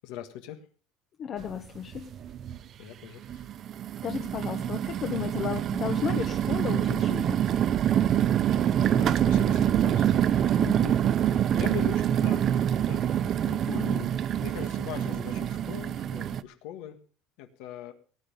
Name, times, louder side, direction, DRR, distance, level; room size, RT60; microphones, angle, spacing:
voice 1, 0.0-0.7 2.8-3.5 8.9-10.1 11.5-12.5 12.7-14.1 14.4-17.0 17.4-17.9, left 11 dB, 70° left, 7 dB, 1.5 m, -41 dB
voice 2, 1.2-2.1 4.0-7.4 10.6-11.0 13.7-14.1, left 8 dB, 35° left, 6 dB, 1.1 m, -34 dB
sound 1, 1.4-1.5 1.9-2.6 3.2-16.4, right 10 dB, 35° right, 0.6 m, -26 dB
18.0 x 9.4 x 5.2 m, 0.39 s
cardioid pair, 155°, 0 cm